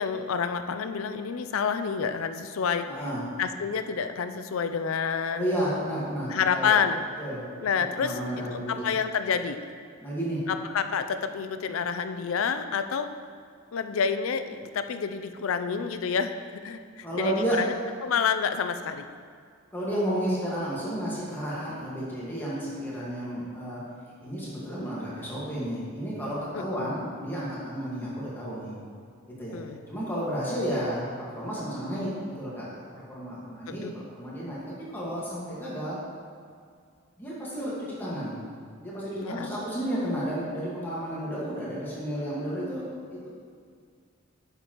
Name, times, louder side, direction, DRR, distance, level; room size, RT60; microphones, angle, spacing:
voice 1, 0.0-2.9 3.4-5.5 6.3-7.0 7.6-8.2 8.5-9.6 10.5-13.1 13.7-17.7 18.0-19.1 26.5-26.9 29.5-29.8 33.8-33.9 39.2-39.5, left 6 dB, 80° left, 9 dB, 0.4 m, -28 dB
voice 2, 2.9-3.2 5.3-6.7 7.2-7.4 7.7-8.8 10.0-10.4 17.0-17.6 19.7-23.8 24.2-28.7 29.4-29.6 29.9-32.1 32.4-32.7 32.9-36.0 37.2-38.4 38.8-42.8 43.1-43.3, equal, 10° left, -8 dB, 1.6 m, -32 dB
9.3 x 6.5 x 3.0 m, 2.2 s
head